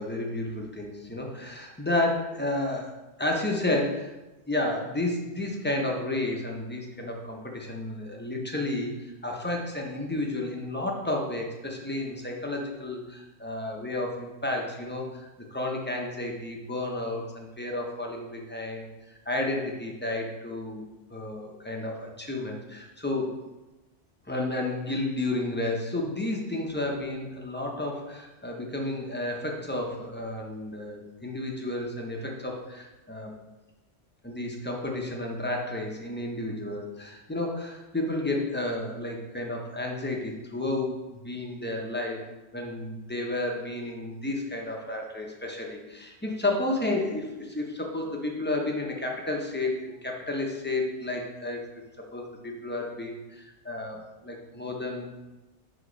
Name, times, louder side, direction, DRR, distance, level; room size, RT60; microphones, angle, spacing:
voice 1, 0.0-2.9 3.2-4.1 4.5-18.9 19.3-20.8 21.1-23.4 24.3-33.3 34.2-42.2 42.5-51.8 52.1-55.1, left 2 dB, 10° left, 0 dB, 0.6 m, -31 dB
6.3 x 2.9 x 5.2 m, 1.1 s
omnidirectional pair, 1.2 m